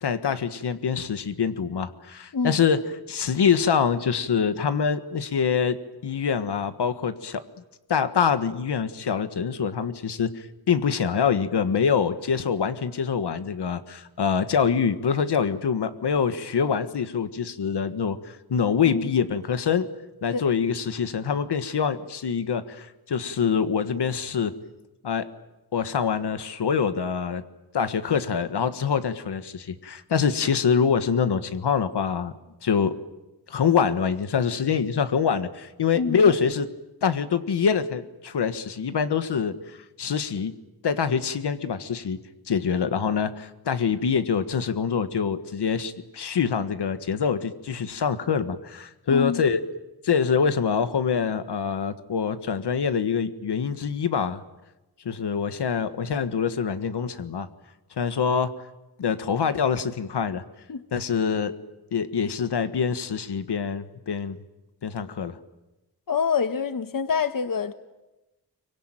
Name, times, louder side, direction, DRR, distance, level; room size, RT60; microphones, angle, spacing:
voice 1, 0.0-2.8 3.1-5.8 6.0-7.4 7.9-19.9 20.2-24.5 25.0-25.3 25.7-27.4 27.7-32.3 32.6-33.0 33.5-36.7 37.0-40.5 40.8-42.2 42.5-49.6 50.0-54.4 55.0-57.5 58.0-58.5 59.0-60.4 60.9-61.5 61.9-64.4 64.8-65.4, left 6 dB, 90° left, 1.6 m, -25 dB
voice 2, 35.9-36.3 49.1-49.4 60.7-60.8 66.1-67.7, left 6 dB, 55° left, 1.4 m, -26 dB
26.0 x 24.0 x 9.1 m
wide cardioid pair, 110°, 39 cm